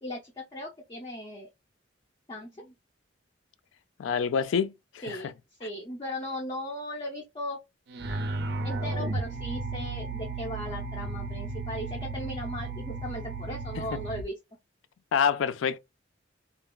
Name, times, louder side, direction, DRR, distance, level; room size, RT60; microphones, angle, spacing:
voice 1, 0.0-1.5 2.3-2.7 5.0-5.3 5.6-7.6 8.6-14.3, left 1 dB, 25° left, 0.5 m, -37 dB
voice 2, 4.0-5.3 13.8-14.0 15.1-15.8, left 7 dB, 90° left, 0.4 m, -27 dB
sound 1, 7.9-14.2, right 3 dB, 55° right, 0.4 m, -34 dB
2.8 x 2.3 x 2.2 m
head